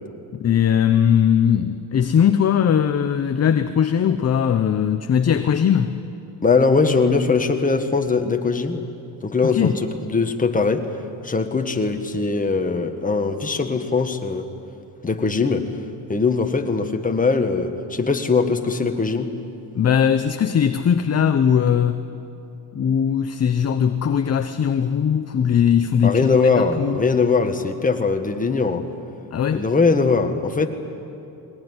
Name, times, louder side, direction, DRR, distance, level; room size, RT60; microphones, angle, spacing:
voice 1, 0.3-6.0 9.4-9.7 19.7-22.0 22.7-26.3 26.6-27.1 29.3-29.6, left 8 dB, 35° left, 9 dB, 0.8 m, -19 dB
voice 2, 6.4-8.8 9.2-10.9 11.2-14.5 15.0-15.7 16.1-19.3 26.0-28.8 29.5-30.7, left 4 dB, 20° left, 5 dB, 1.7 m, -21 dB
21.0 x 19.0 x 9.8 m, 2.8 s
cardioid pair, 105°, 44 cm